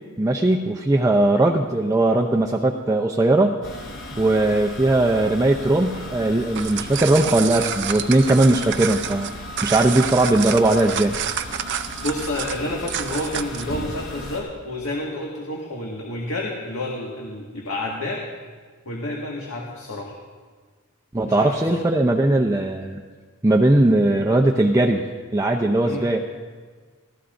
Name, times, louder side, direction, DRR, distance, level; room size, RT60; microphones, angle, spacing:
voice 1, 0.2-3.5 4.2-11.1 21.1-23.0 23.4-25.0 25.3-26.2, right 2 dB, 15° right, 1 dB, 0.6 m, -19 dB
sound 1, 3.6-14.4, left 1 dB, 65° left, 5.6 m, -36 dB
sound 2, 6.4-13.7, right 9 dB, 55° right, 0.6 m, -29 dB
voice 2, 12.0-18.2 18.8-20.1 21.2-21.8 25.8-26.1, left 1 dB, 80° left, -2 dB, 1.8 m, -29 dB
25.5 x 16.0 x 2.6 m, 1.5 s
head